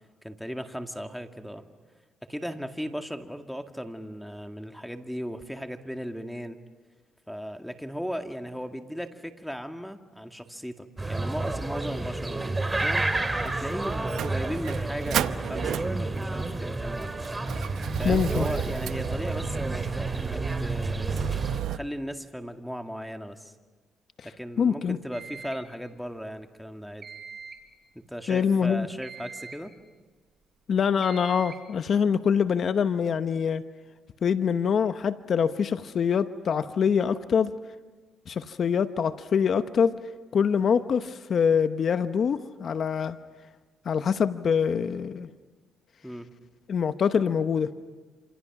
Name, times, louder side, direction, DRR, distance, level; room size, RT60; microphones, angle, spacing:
voice 1, 0.2-1.6 2.2-6.6 7.3-17.2 18.0-23.5 24.2-27.1 27.9-29.7 46.0-46.3, equal, ahead, 6 dB, 1.9 m, -37 dB
sound 1, 11.0-21.6, right 2 dB, 20° right, 2.4 m, -30 dB
Motor vehicle (road), 13.5-21.8, right 10 dB, 75° right, 0.7 m, -33 dB
voice 2, 18.0-18.5 24.6-25.0 28.3-28.9 30.7-33.6 34.2-37.5 38.3-39.9 40.3-43.2 43.8-45.3 46.7-47.7, left 7 dB, 55° left, 11 dB, 0.9 m, -24 dB
sound 2, 25.1-25.7 27.0-27.7 29.0-29.7 31.0-31.7, right 5 dB, 45° right, 3.9 m, -43 dB
28.0 x 27.5 x 6.0 m, 1.3 s
cardioid pair, 90°, 0 cm